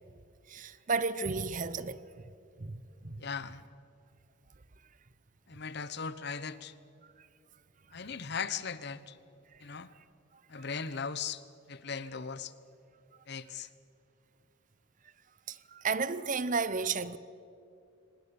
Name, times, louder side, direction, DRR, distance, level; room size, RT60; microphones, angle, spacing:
voice 1, 0.5-2.0 2.6-3.2 7.2-7.3 7.9-8.0 9.5-9.6 10.6-10.7 15.5-17.2, right 4 dB, 40° right, 0.7 m, -33 dB
voice 2, 3.2-3.6 5.5-6.7 7.9-9.2 9.6-9.9 10.5-11.4 11.7-12.5 13.3-13.7, left 6 dB, 55° left, 0.9 m, -38 dB
24.5 x 20.0 x 7.0 m
head